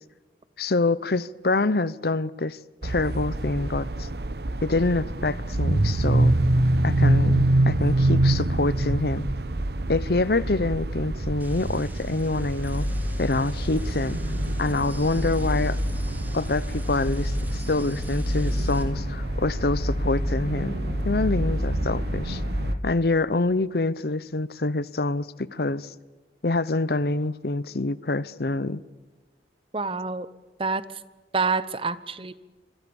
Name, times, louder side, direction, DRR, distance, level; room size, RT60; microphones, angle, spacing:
voice 1, 0.6-4.1 4.6-6.3 6.8-9.3 9.9-12.9 13.2-14.2 14.6-15.8 16.3-20.8 21.0-22.4 22.8-25.9 26.4-28.8, left 2 dB, 60° left, 0.8 m, -26 dB
sound 1, 2.8-22.7, right 1 dB, 60° right, 1.0 m, -26 dB
sound 2, 11.4-18.8, right 2 dB, 10° right, 3.2 m, -47 dB
sound 3, 12.6-22.8, equal, 45° left, 2.5 m, -29 dB
voice 2, 29.7-30.3 30.6-30.8 31.3-32.3, right 4 dB, 30° right, 1.0 m, -27 dB
27.0 x 25.5 x 7.1 m
head